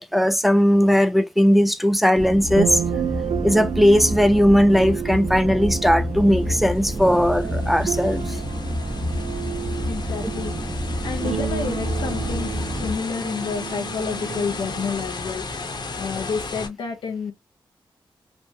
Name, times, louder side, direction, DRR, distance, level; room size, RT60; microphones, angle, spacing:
voice 1, 0.0-2.8 3.4-8.4, equal, ahead, 0.4 m, -18 dB
sound 1, 2.2-12.9, equal, 20° right, 1.1 m, -28 dB
sound 2, 2.5-15.1, right 10 dB, 85° right, 0.4 m, -32 dB
sound 3, 6.4-16.7, left 3 dB, 55° left, 1.0 m, -35 dB
voice 2, 9.9-17.3, left 5 dB, 90° left, 0.6 m, -30 dB
3.0 x 2.2 x 2.7 m
cardioid pair, 55°, 9 cm